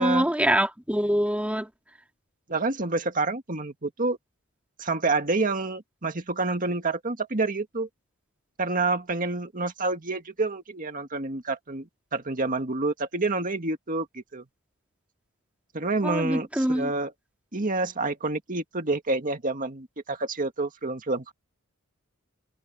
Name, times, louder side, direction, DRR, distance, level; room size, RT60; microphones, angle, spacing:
voice 1, 0.0-1.7 16.0-16.9, right 1 dB, 5° right, 1.9 m, -24 dB
voice 2, 2.5-4.2 4.8-7.9 8.6-14.4 15.7-17.1 17.5-21.3, right 3 dB, 40° right, 1.8 m, -28 dB
head